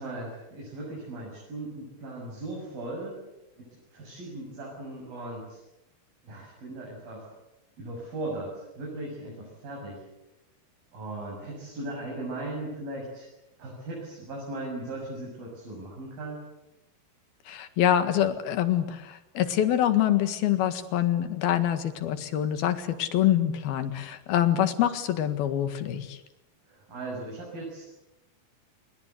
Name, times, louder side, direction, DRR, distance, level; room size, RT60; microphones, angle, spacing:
voice 1, 0.0-3.2 3.6-3.7 3.9-5.6 6.2-7.3 7.8-10.0 10.9-13.3 13.6-16.4 26.7-27.8, right 2 dB, 70° right, -2 dB, 8.9 m, -38 dB
voice 2, 17.5-26.2, left 11 dB, 80° left, 10 dB, 3.7 m, -25 dB
27.5 x 23.0 x 8.3 m, 0.94 s
omnidirectional pair, 4.3 m